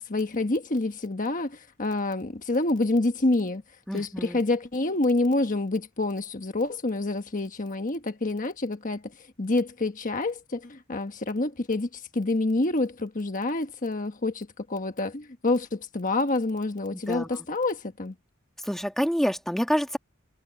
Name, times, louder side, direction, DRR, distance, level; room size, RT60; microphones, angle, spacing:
voice 1, 0.0-3.6 3.9-9.1 9.4-18.1, left 2 dB, 40° left, 1.3 m, -27 dB
voice 2, 3.9-4.4 16.9-17.3 18.6-20.0, equal, ahead, 1.9 m, -27 dB
head